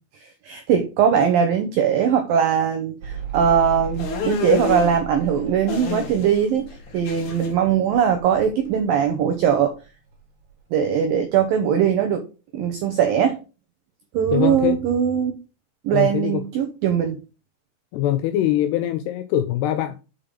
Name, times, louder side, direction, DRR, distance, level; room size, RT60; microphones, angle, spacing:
voice 1, 0.2-9.8 10.7-12.2 12.5-13.4 14.1-15.4 15.8-17.2, right 8 dB, 85° right, 2.0 m, -20 dB
Mechanical fan, 3.0-9.9 10.1-10.9, right 6 dB, 55° right, 1.9 m, -37 dB
sound 1, 4.0-5.0 5.7-6.4 6.7-7.5, left 5 dB, 55° left, 2.5 m, -28 dB
voice 2, 14.3-14.8 15.9-16.4 17.9-20.0, left 12 dB, 85° left, 2.4 m, -23 dB
6.8 x 5.7 x 5.2 m
omnidirectional pair, 5.3 m